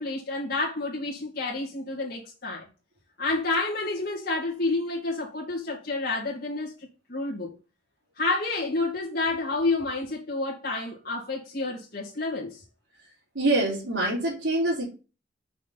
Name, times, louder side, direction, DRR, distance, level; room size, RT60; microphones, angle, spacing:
voice 1, 0.0-2.7 3.2-6.7 7.1-7.5 8.2-12.6, left 3 dB, 55° left, 2.3 m, -29 dB
voice 2, 13.3-14.8, right 2 dB, 90° right, 3.3 m, -25 dB
6.1 x 5.9 x 4.1 m
head